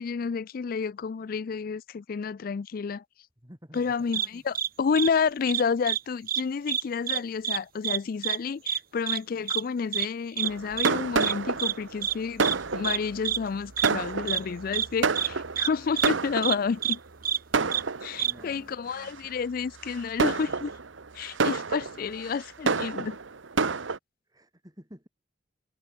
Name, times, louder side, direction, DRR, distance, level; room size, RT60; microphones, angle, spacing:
voice 1, 0.0-3.0 3.7-12.4 12.7-17.0 18.0-20.7 21.1-23.2, left 5 dB, 50° left, 0.4 m, -30 dB
voice 2, 3.4-3.9 4.2-4.5 18.1-19.2 24.3-25.1, equal, 20° right, 7.2 m, -51 dB
sound 1, 4.1-4.3 4.5-4.7 5.0-5.1 5.5-6.0 6.3-6.4 6.7-7.2 7.4-7.6 7.8-8.4 8.7-8.8 9.1-9.2 9.5-9.6 9.9-10.1 10.4-10.5 10.8-10.9 11.2-11.3 11.6-11.7 12.0-12.1 12.4-12.6 12.8-13.0 13.2-13.4 13.8-13.9 14.3-14.4 14.7-14.9 15.2-15.3 15.6-15.7 16.0-16.1 16.4-16.6 16.8-17.0 17.2-17.4 17.7-17.8 18.2-18.3, right 10 dB, 50° right, 1.1 m, -27 dB
Fireworks, 10.4-16.9 17.5-18.4 19.0-19.3 19.8-24.0, right 4 dB, 85° right, 1.1 m, -29 dB
head